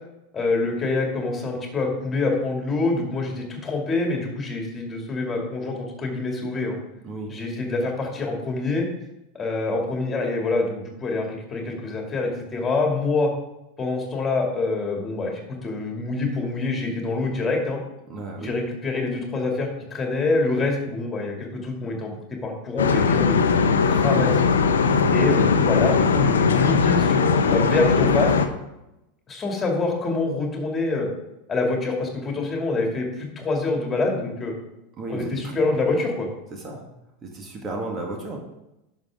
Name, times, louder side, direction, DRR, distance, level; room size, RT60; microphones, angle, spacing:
voice 1, 0.3-6.8 7.3-8.9 9.3-13.3 13.8-17.8 18.4-22.1 22.4-23.4 23.8-24.5 25.1-28.3 29.3-31.1 31.5-34.5 35.1-36.3, left 3 dB, 20° left, 1 dB, 2.6 m, -26 dB
voice 2, 18.1-18.5 24.8-25.1 35.0-35.8 36.5-36.8 37.2-38.4, right 2 dB, 30° right, 1 dB, 1.9 m, -34 dB
sound 1, 22.8-28.5, left 5 dB, 70° left, 0.7 m, -19 dB
11.0 x 6.5 x 3.7 m, 0.91 s
figure-of-eight pair, 85°, 0 cm